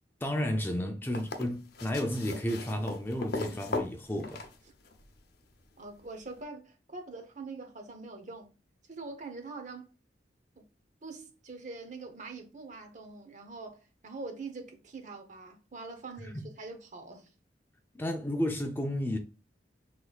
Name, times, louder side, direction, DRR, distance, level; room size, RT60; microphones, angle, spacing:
voice 1, 0.2-4.5 16.2-16.4 17.9-19.2, equal, 10° left, 0.5 m, -32 dB
sound 1, 1.0-5.1 6.4-6.5, left 2 dB, 60° left, 0.7 m, -38 dB
voice 2, 5.8-8.5 8.9-9.9 10.6-10.7 11.0-17.3, right 3 dB, 45° right, 0.9 m, -44 dB
6.0 x 3.3 x 2.3 m
head